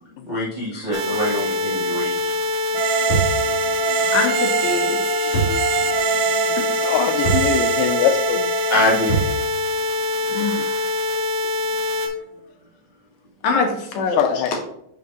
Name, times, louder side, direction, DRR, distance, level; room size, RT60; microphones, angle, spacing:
voice 1, 0.2-2.2 2.7-2.8 3.3-4.1 5.2-6.5 8.7-9.2, left 1 dB, 25° right, -7 dB, 0.9 m, -26 dB
sound 1, 0.9-12.1, left 3 dB, 60° right, 1.6 m, -24 dB
sound 2, 2.7-9.4, right 8 dB, 85° right, 1.4 m, -24 dB
sound 3, 3.1-3.4 5.3-5.6 5.9-6.0 7.2-7.5 9.1-9.4, right 4 dB, 50° left, 3.1 m, -22 dB
voice 2, 4.1-5.4 6.6-6.9 10.3-10.9 13.4-14.4, left 4 dB, 70° left, 3 dB, 2.1 m, -25 dB
voice 3, 6.8-8.4 10.4-10.7 11.1-11.3 14.1-14.6, left 9 dB, 85° left, 8 dB, 2.2 m, -23 dB
11.0 x 4.0 x 2.6 m, 0.77 s
omnidirectional pair, 3.8 m